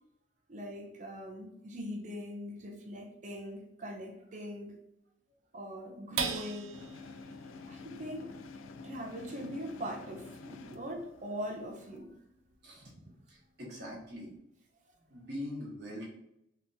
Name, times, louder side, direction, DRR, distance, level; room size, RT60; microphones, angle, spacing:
voice 1, 0.5-4.8 5.5-6.8 7.7-8.4 8.8-12.2 12.9-13.0, equal, 40° right, 1 dB, 0.5 m, -41 dB
sound 1, 6.2-12.9 13.3-13.4 13.8-14.3, right 6 dB, 90° right, 0.5 m, -43 dB
sound 2, 6.7-12.0, left 4 dB, 85° left, 0.3 m, -49 dB
voice 2, 13.3-14.3 15.0-16.1, left 1 dB, 60° right, -4 dB, 1.2 m, -43 dB
3.5 x 2.9 x 2.7 m, 0.79 s
head